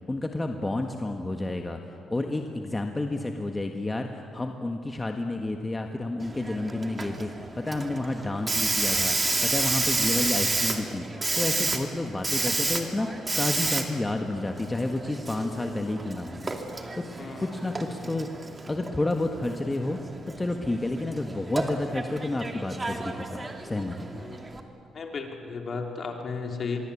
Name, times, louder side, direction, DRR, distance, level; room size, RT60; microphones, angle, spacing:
voice 1, 0.1-1.8 2.1-9.2 9.4-11.1 11.3-16.6 16.9-17.0 17.4-18.3 18.7-20.0 20.4-24.1, left 2 dB, 20° left, 4 dB, 1.6 m, -30 dB
Hiss, 6.2-24.6, right 3 dB, 25° right, 2.5 m, -31 dB
voice 2, 24.9-26.8, left 4 dB, 45° left, 3 dB, 3.5 m, -34 dB
24.5 x 22.5 x 8.5 m, 2.6 s
cardioid pair, 90°, 0 cm